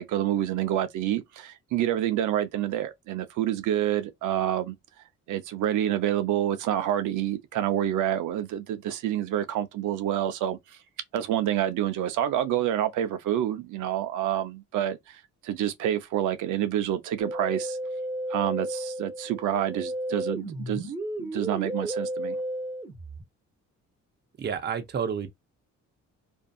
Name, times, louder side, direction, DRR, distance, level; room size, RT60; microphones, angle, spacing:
voice 1, 0.0-4.7 5.3-10.8 11.1-17.8 18.3-20.9 21.2-22.4, right 11 dB, 80° right, 0.6 m, -28 dB
Musical instrument, 17.2-23.2, right 1 dB, 10° right, 1.0 m, -33 dB
voice 2, 24.4-25.3, right 7 dB, 35° right, 0.6 m, -30 dB
2.6 x 2.3 x 2.3 m
cardioid pair, 90°, 30 cm